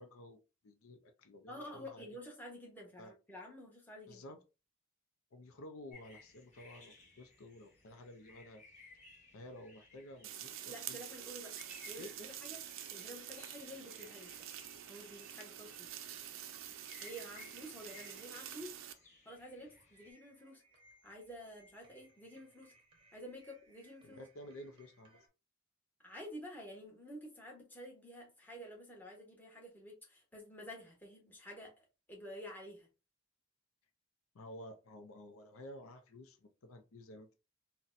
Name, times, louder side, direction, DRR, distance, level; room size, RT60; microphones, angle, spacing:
voice 1, 0.0-2.1 3.0-3.1 4.1-4.4 5.3-8.6 9.3-11.0 12.0-12.3 24.0-25.2 34.3-37.3, left 1 dB, 80° left, 0.5 m, -52 dB
voice 2, 1.5-4.2 10.7-11.5 11.8-12.6 12.9-14.5 14.9-15.9 17.0-18.7 19.2-20.6 21.0-22.7 23.1-24.2 26.0-31.7 32.1-32.9, equal, 10° left, 0.9 m, -50 dB
sound 1, 5.9-20.1, left 3 dB, 35° left, 1.1 m, -60 dB
sound 2, 10.2-18.9, right 10 dB, 70° right, 0.4 m, -47 dB
sound 3, 16.9-25.3, right 2 dB, 25° right, 0.7 m, -68 dB
4.0 x 2.1 x 2.5 m
head